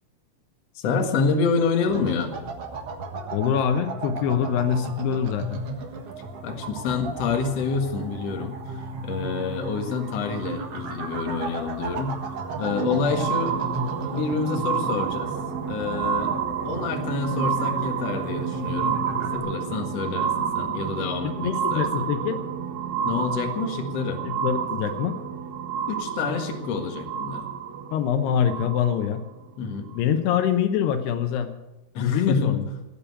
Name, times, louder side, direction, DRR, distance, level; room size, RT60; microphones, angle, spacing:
voice 1, 0.7-2.3 6.4-12.2 12.6-13.6 14.1-15.3 15.7-16.4 16.6-19.0 19.3-22.1 23.0-24.2 25.9-27.5 29.6-29.9 31.9-32.6, left 5 dB, 50° left, 4 dB, 2.2 m, -27 dB
sound 1, 1.9-19.4, right 2 dB, 55° right, 1.8 m, -34 dB
voice 2, 3.3-5.6 21.2-22.4 24.3-25.2 27.9-29.2 29.9-31.5 32.0-32.6, left 8 dB, 80° left, 9 dB, 2.9 m, -24 dB
sound 2, 12.3-29.2 29.9-30.0, right 8 dB, 90° right, 3.5 m, -30 dB
18.5 x 8.9 x 8.5 m, 1.0 s
omnidirectional pair, 4.8 m